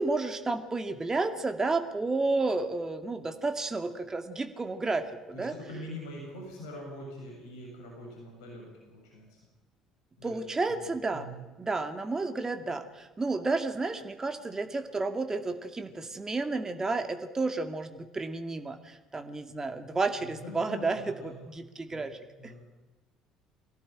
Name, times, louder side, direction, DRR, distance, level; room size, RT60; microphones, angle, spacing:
voice 1, 0.0-5.5 10.2-11.3 11.6-22.5, right 3 dB, 20° right, 7 dB, 2.2 m, -31 dB
voice 2, 5.3-9.4 10.2-10.4 10.8-11.4 20.2-21.5 21.9-22.0 22.4-22.6, equal, 70° left, 0 dB, 7.3 m, -44 dB
24.5 x 17.5 x 9.0 m, 1.2 s
figure-of-eight pair, 55°, 3 cm